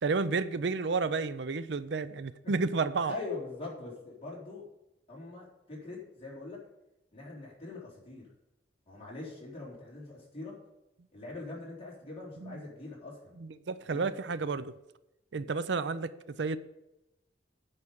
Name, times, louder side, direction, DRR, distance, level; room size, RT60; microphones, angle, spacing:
voice 1, 0.0-3.1 12.4-12.6 13.4-14.7 15.3-16.6, right 4 dB, 70° right, 0.5 m, -31 dB
voice 2, 3.0-4.6 5.1-6.6 7.1-8.3 8.9-10.5 11.1-13.3 13.9-14.1, left 2 dB, 35° left, 4.1 m, -42 dB
9.7 x 6.0 x 8.5 m
head